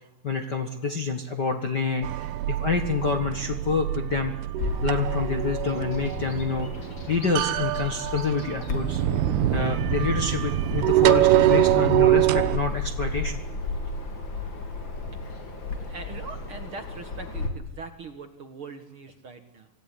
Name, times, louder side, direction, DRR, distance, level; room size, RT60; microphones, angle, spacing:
voice 1, 0.2-4.3 4.8-9.0 9.5-13.4, left 4 dB, 60° left, 6 dB, 1.1 m, -27 dB
sound 1, 2.0-12.6, right 14 dB, 80° right, 2.9 m, -24 dB
Bird vocalization bird call bird song, 4.6-17.5, left 3 dB, 30° left, 3.1 m, -34 dB
voice 2, 15.8-19.7, right 4 dB, 55° right, 8 dB, 1.5 m, -41 dB
26.0 x 16.0 x 10.0 m, 0.91 s
omnidirectional pair, 4.6 m